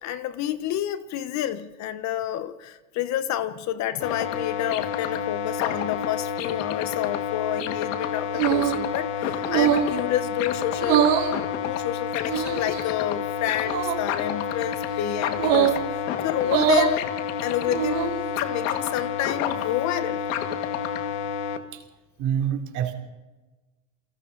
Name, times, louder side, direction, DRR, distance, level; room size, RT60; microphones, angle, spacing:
voice 1, 0.0-11.1 11.5-17.1 17.4-20.3, left 11 dB, 45° left, 1.3 m, -29 dB
sound 1, 4.0-21.6, left 8 dB, 75° left, 2.1 m, -29 dB
sound 2, 8.3-8.8 9.5-9.9 10.8-11.3 12.3-12.8 13.6-14.0 15.4-15.8 16.4-16.9 17.6-18.2, right 9 dB, 80° right, 3.7 m, -22 dB
voice 2, 22.2-22.9, right 9 dB, 50° right, 3.1 m, -26 dB
29.5 x 23.0 x 4.1 m
supercardioid pair, 130°, 38 cm